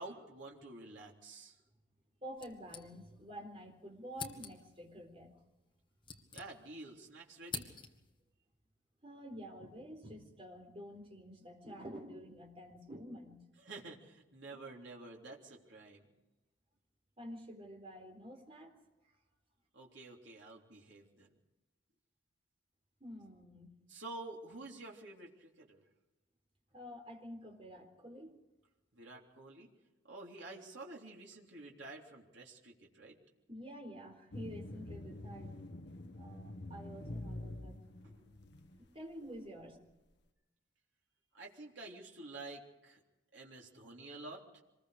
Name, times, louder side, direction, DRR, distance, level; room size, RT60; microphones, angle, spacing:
voice 1, 0.0-1.6 6.3-7.7 13.6-16.1 19.7-21.3 23.9-25.8 28.9-29.7 30.0-33.2 38.0-38.4 41.3-43.0 43.3-44.6, right 2 dB, 65° right, -2 dB, 3.4 m, -50 dB
voice 2, 2.2-5.3 9.0-13.4 14.5-14.6 17.2-18.8 23.0-23.8 26.7-28.4 33.5-35.6 36.1-37.7 38.9-39.8, equal, 30° right, 2 dB, 4.1 m, -49 dB
sound 1, 2.4-3.4 3.6-3.7 4.1-4.8 5.6-6.9 7.2-8.2, left 5 dB, 25° left, 1.8 m, -47 dB
sound 2, 34.3-38.9, left 1 dB, 55° left, 1.2 m, -46 dB
26.0 x 21.0 x 5.0 m, 1.0 s
head